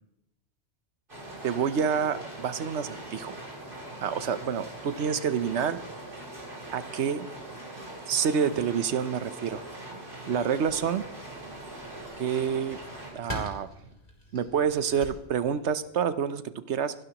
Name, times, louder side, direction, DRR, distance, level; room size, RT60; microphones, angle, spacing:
sound 1, 1.1-13.1, right 1 dB, 50° right, 4.3 m, -42 dB
voice 1, 1.4-3.4 4.0-5.8 6.7-7.3 8.1-9.6 10.3-11.0 12.2-12.8 13.1-13.7 14.3-16.9, right 7 dB, 90° right, 13 dB, 1.1 m, -28 dB
sound 2, 10.6-16.0, equal, 35° left, 3.4 m, -44 dB
26.5 x 12.0 x 3.0 m, 0.82 s
omnidirectional pair, 1.1 m